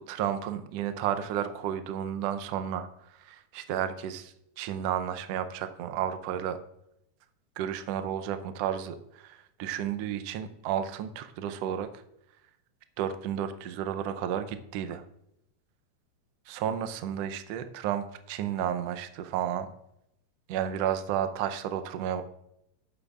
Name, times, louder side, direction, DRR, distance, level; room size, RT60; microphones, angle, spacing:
voice 1, 0.1-6.6 7.6-12.0 13.0-15.0 16.5-19.7 20.5-22.2, right 9 dB, 80° right, 10 dB, 1.5 m, -32 dB
12.0 x 8.8 x 2.4 m, 0.79 s
omnidirectional pair, 3.5 m